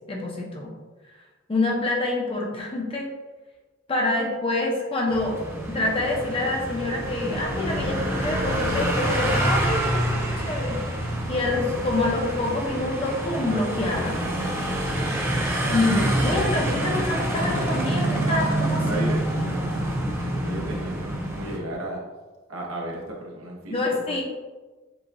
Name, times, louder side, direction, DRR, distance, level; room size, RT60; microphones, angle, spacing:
voice 1, 0.1-0.7 1.5-3.1 3.9-5.4 5.7-10.8 11.3-14.2 15.7-18.8 23.7-24.2, left 2 dB, 25° left, -1 dB, 0.7 m, -26 dB
sound 1, 5.1-21.6, right 1 dB, 10° right, 0.5 m, -27 dB
sound 2, 6.6-12.2, right 1 dB, 45° right, 1.0 m, -34 dB
voice 2, 18.7-22.0 22.5-24.2, right 1 dB, 85° right, -1 dB, 0.9 m, -34 dB
6.9 x 2.4 x 2.6 m, 1.3 s
head